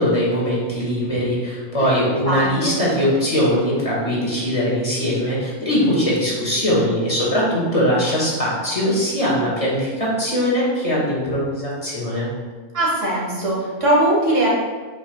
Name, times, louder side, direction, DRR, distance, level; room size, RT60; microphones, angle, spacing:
voice 1, 0.0-12.3, equal, 25° left, -6 dB, 2.0 m, -21 dB
voice 2, 2.2-2.8 12.7-14.5, right 1 dB, 50° right, -4 dB, 2.0 m, -20 dB
8.4 x 5.8 x 2.4 m, 1.4 s
omnidirectional pair, 1.6 m